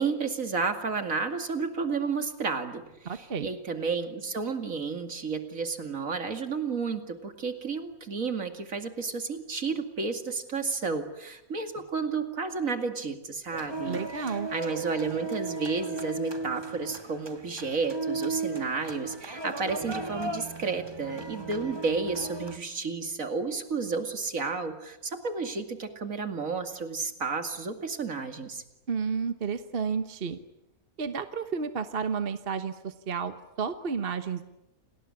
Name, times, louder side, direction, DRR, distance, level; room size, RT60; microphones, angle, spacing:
voice 1, 0.0-28.6, right 4 dB, 65° right, 7 dB, 2.7 m, -32 dB
voice 2, 3.0-3.5 13.8-14.5 28.9-30.4 31.0-34.4, right 6 dB, 45° right, 10 dB, 1.3 m, -31 dB
sound 1, 13.5-22.6, right 3 dB, 20° right, 1.3 m, -36 dB
29.0 x 19.5 x 9.8 m, 0.87 s
omnidirectional pair, 1.5 m